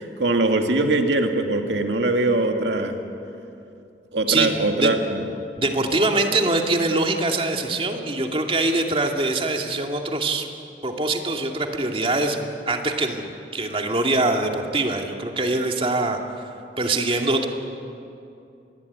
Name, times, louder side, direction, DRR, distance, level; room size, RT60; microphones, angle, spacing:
voice 1, 0.0-3.0 4.1-5.2, right 2 dB, 75° right, 4 dB, 2.2 m, -22 dB
voice 2, 5.6-10.5 10.8-16.4 16.8-17.5, right 2 dB, 30° right, 3 dB, 2.4 m, -23 dB
27.0 x 21.0 x 9.6 m, 2.7 s
head